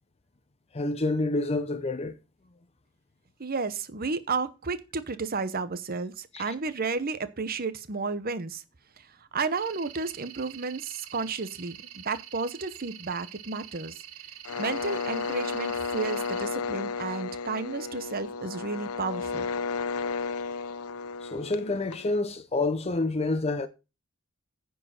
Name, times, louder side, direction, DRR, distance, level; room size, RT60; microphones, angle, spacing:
voice 1, 0.7-2.2 6.3-6.5 21.2-23.7, left 2 dB, 30° left, 0.6 m, -28 dB
voice 2, 3.4-8.6 9.0-9.1 9.3-14.0 14.6-19.5, right 4 dB, 45° right, 0.9 m, -32 dB
sound 1, 9.6-16.4, right 11 dB, 75° right, 1.4 m, -46 dB
sound 2, 14.4-22.2, left 4 dB, 85° left, 0.5 m, -33 dB
9.7 x 4.7 x 7.5 m
head